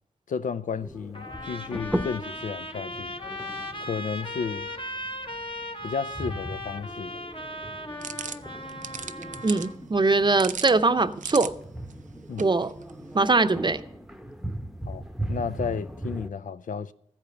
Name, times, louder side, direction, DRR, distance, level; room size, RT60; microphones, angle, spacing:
voice 1, 0.3-3.1 3.8-4.7 5.8-7.1 12.3-12.4 14.9-15.0 15.3-16.9, left 6 dB, 75° left, 0.4 m, -32 dB
sound 1, 0.8-16.3, right 1 dB, ahead, 0.8 m, -38 dB
Trumpet, 1.1-9.8, left 1 dB, 40° left, 1.2 m, -37 dB
sound 2, 8.0-13.2, right 6 dB, 75° right, 0.5 m, -40 dB
voice 2, 9.4-11.5 12.4-12.7 13.1-13.8, right 3 dB, 35° right, 0.7 m, -22 dB
14.5 x 5.1 x 8.0 m
cardioid pair, 50°, 13 cm